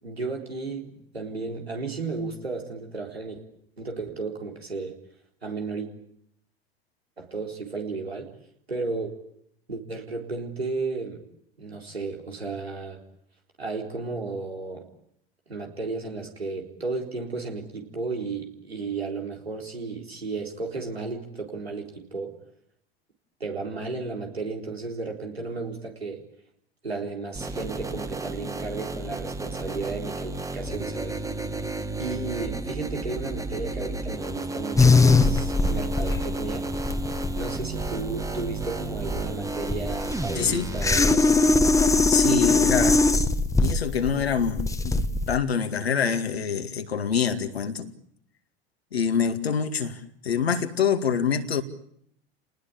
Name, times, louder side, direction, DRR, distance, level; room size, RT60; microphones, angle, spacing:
voice 1, 0.0-3.4 3.8-5.0 5.4-5.9 7.2-8.3 8.7-9.1 9.7-11.2 11.6-13.0 13.6-14.9 15.5-22.4 23.4-26.2 26.8-31.2 32.0-36.7 37.3-41.5, right 3 dB, 90° right, 4.0 m, -33 dB
sound 1, 27.4-41.0, right 2 dB, 10° right, 1.8 m, -33 dB
sound 2, 34.8-45.4, left 3 dB, 10° left, 1.5 m, -21 dB
voice 2, 40.4-40.7 42.1-43.0 43.6-47.9 48.9-51.6, left 7 dB, 80° left, 2.2 m, -26 dB
29.5 x 19.5 x 8.6 m
figure-of-eight pair, 80°, 30 cm